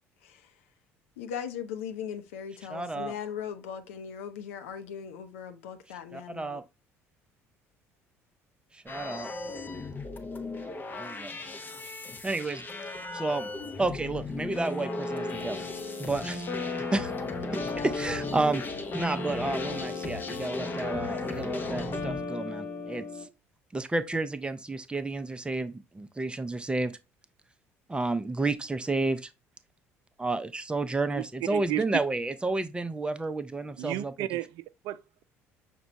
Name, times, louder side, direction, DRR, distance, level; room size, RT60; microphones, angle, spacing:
voice 1, 0.2-0.5 1.2-6.6, left 8 dB, 75° left, 0.6 m, -39 dB
voice 2, 2.7-3.1 6.1-6.6 8.7-9.3 10.9-11.3 12.2-12.6 13.1-13.5 13.8-15.7 16.0-16.4 16.8-17.1 17.5-18.6 18.9-23.0 23.7-27.0 27.9-29.3 30.2-34.1, right 2 dB, 15° right, 0.5 m, -31 dB
sound 1, 8.9-22.2, left 3 dB, 25° left, 0.7 m, -37 dB
sound 2, 14.5-23.3, left 3 dB, 45° left, 1.1 m, -36 dB
voice 3, 31.5-31.8 33.8-35.2, right 15 dB, 60° right, 0.3 m, -34 dB
6.0 x 2.2 x 3.9 m
hypercardioid pair, 60°, 7 cm